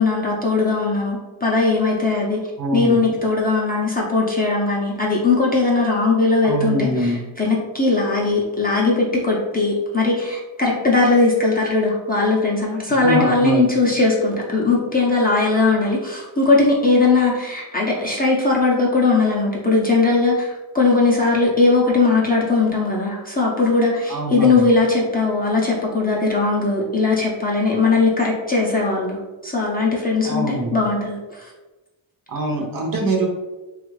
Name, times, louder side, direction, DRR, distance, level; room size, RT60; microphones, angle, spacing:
voice 1, 0.0-2.4 2.7-31.5, left 3 dB, 20° left, -4 dB, 0.5 m, -19 dB
voice 2, 2.6-3.1 6.4-7.2 13.0-13.7 24.1-24.6 30.2-30.8 32.3-33.3, right 2 dB, 45° right, 0 dB, 0.7 m, -23 dB
2.9 x 2.4 x 3.1 m, 1.2 s
wide cardioid pair, 110°, 47 cm